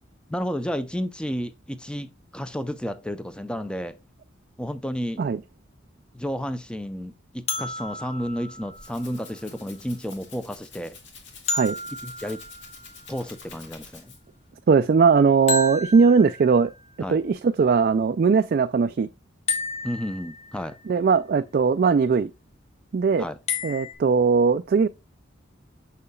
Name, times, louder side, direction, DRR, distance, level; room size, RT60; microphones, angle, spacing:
voice 1, 0.3-4.0 4.6-5.2 6.1-11.0 12.0-12.4 13.1-14.1 17.0-17.2 19.8-20.8 23.2-23.4, equal, 5° left, 0.5 m, -31 dB
sound 1, 7.5-9.4 11.5-13.3 15.5-16.9 19.5-20.8 23.5-23.9, left 4 dB, 35° left, 1.0 m, -32 dB
Rattle (instrument), 8.5-14.4, left 5 dB, 65° left, 2.0 m, -48 dB
voice 2, 14.7-16.7 17.1-19.1 20.9-22.3 22.9-23.3 23.6-24.9, right 5 dB, 50° right, 0.3 m, -19 dB
6.8 x 6.5 x 2.3 m
head